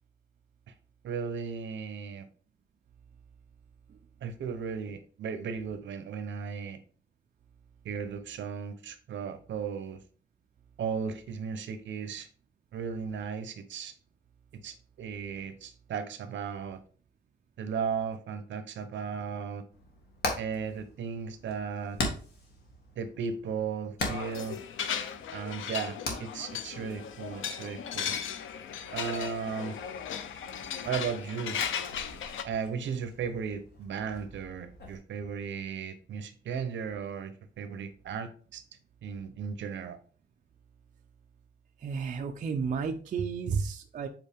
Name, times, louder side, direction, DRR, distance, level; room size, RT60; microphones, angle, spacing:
voice 1, 1.0-2.3 4.2-6.8 7.8-10.0 10.8-12.3 12.7-13.9 14.6-16.8 17.6-19.6 20.4-22.0 23.0-24.6 25.3-28.1 28.9-29.8 30.8-31.6 32.4-38.6 39.0-40.0, right 6 dB, 70° right, 10 dB, 0.9 m, -36 dB
Hammer, 19.7-35.0, left 2 dB, 55° left, 1.9 m, -41 dB
sound 1, 24.0-32.4, left 8 dB, 80° left, 0.7 m, -36 dB
voice 2, 41.8-44.1, right 5 dB, 40° right, 4 dB, 0.5 m, -32 dB
7.9 x 4.4 x 3.5 m, 0.42 s
wide cardioid pair, 170°, 20 cm